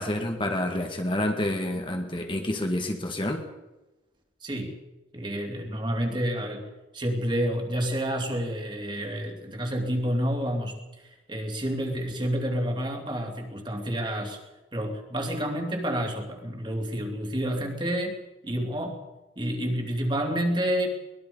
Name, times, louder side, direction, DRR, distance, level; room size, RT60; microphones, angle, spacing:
voice 1, 0.0-3.4, left 1 dB, 25° left, 3 dB, 1.8 m, -28 dB
voice 2, 4.4-4.7 5.1-6.6 6.9-14.4 14.7-18.2 18.4-19.0 19.4-20.9, equal, 25° right, 2 dB, 3.1 m, -29 dB
23.0 x 20.5 x 5.5 m, 1.0 s
head